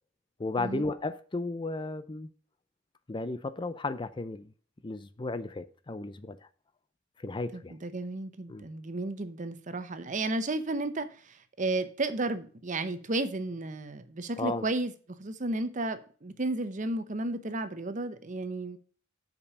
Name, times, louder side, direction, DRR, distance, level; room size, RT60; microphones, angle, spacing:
voice 1, 0.4-2.3 3.1-4.5 4.8-6.4 7.2-7.7 8.5-8.6 14.4-14.7, left 2 dB, 25° left, 0.5 m, -34 dB
voice 2, 7.7-14.9 15.2-18.8, right 2 dB, 40° right, 0.8 m, -33 dB
7.2 x 5.3 x 6.6 m
head